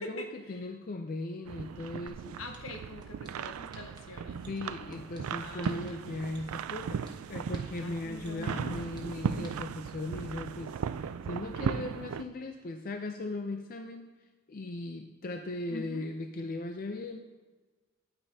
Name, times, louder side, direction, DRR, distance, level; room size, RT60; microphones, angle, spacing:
voice 1, 0.0-2.4 4.2-14.1 14.5-17.2, left 2 dB, 40° left, 5 dB, 0.5 m, -38 dB
sound 1, 1.4-12.2, right 7 dB, 85° right, 0.3 m, -37 dB
sound 2, 2.1-2.2 2.5-3.3 3.7-4.0 4.4-5.2 5.6-5.9 6.3-7.1 7.5-7.8 8.2-9.0 9.4-9.5, right 3 dB, 20° right, 1.2 m, -52 dB
voice 2, 2.4-4.4 5.4-6.0 7.8-8.9 15.7-16.1, left 1 dB, 75° left, 4 dB, 1.1 m, -43 dB
11.0 x 8.8 x 2.7 m, 1.3 s
head